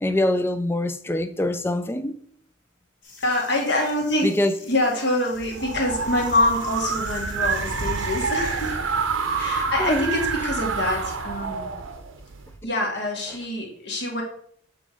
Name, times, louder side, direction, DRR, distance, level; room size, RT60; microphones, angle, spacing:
voice 1, 0.0-2.2 4.2-4.5 9.8-10.1, left 1 dB, 10° left, 0.3 m, -24 dB
sound 1, 3.0-8.7, left 3 dB, 70° left, 2.4 m, -46 dB
voice 2, 3.2-8.8 9.4-11.7 12.6-14.2, left 1 dB, 55° left, 1.8 m, -25 dB
sound 2, 5.4-12.5, right 5 dB, 80° right, 0.8 m, -27 dB
7.6 x 3.6 x 4.9 m
head